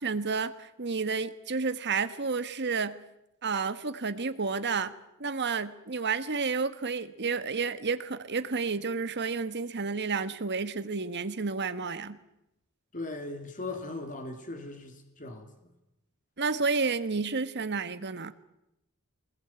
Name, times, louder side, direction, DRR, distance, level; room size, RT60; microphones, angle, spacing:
voice 1, 0.0-2.9 3.4-4.9 5.2-12.2 16.4-18.3, right 4 dB, 50° right, 11 dB, 1.3 m, -31 dB
voice 2, 12.9-15.5, left 2 dB, 35° left, 5 dB, 3.1 m, -38 dB
23.0 x 20.5 x 8.9 m, 0.88 s
head